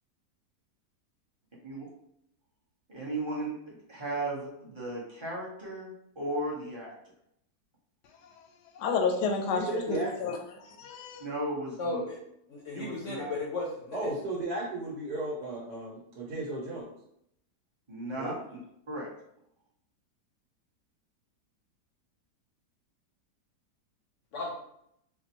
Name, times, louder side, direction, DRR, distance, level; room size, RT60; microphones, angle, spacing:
voice 1, 2.9-6.9 11.2-12.0 12.7-13.3 17.9-18.6 18.9-19.1, right 1 dB, 25° right, -5 dB, 0.7 m, -36 dB
voice 2, 8.7-9.6 9.9-11.3, left 5 dB, 90° left, 3 dB, 1.2 m, -30 dB
voice 3, 9.5-10.3 13.9-16.9 18.1-18.4, right 2 dB, 80° right, -4 dB, 1.4 m, -35 dB
voice 4, 11.8-12.2 12.5-14.1 24.3-24.5, left 2 dB, 65° left, -2 dB, 0.8 m, -35 dB
4.2 x 2.1 x 2.9 m, 0.75 s
omnidirectional pair, 1.8 m